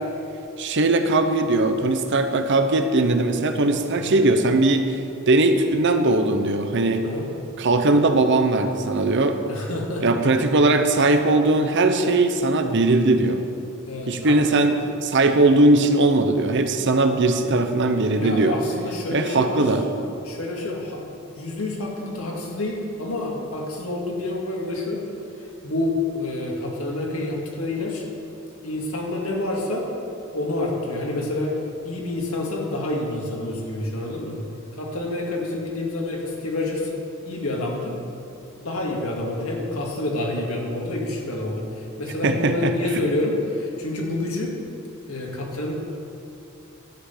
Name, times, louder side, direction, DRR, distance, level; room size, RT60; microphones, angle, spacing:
voice 1, 0.6-4.9 5.3-7.0 7.6-9.4 10.0-13.4 14.1-18.6 19.1-19.8 42.2-42.7, right 2 dB, 60° right, 7 dB, 0.8 m, -19 dB
voice 2, 9.5-10.0 13.9-14.4 17.4-17.5 18.2-19.7 20.2-21.0 21.4-25.0 25.6-28.0 28.6-29.9 30.3-31.5 31.8-34.4 34.7-36.9 37.2-38.0 38.6-44.5 45.1-45.7, left 2 dB, 85° left, -1 dB, 2.2 m, -28 dB
11.5 x 5.8 x 8.3 m, 2.7 s
head